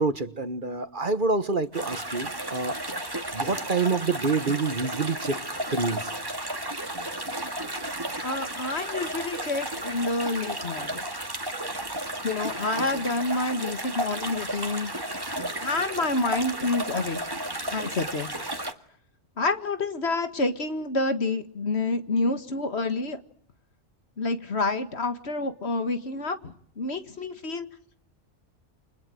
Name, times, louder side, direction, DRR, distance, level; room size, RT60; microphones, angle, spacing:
voice 1, 0.0-2.8 3.3-5.4 5.7-6.1, right 4 dB, 45° right, 12 dB, 1.4 m, -27 dB
sound 1, 1.7-18.7, right 1 dB, 20° right, 2.1 m, -33 dB
voice 2, 8.2-11.0 12.2-14.9 15.6-17.2 17.7-18.3 19.4-23.2 24.2-27.7, left 2 dB, 60° left, 9 dB, 2.1 m, -28 dB
29.5 x 25.5 x 7.8 m, 0.66 s
omnidirectional pair, 1.2 m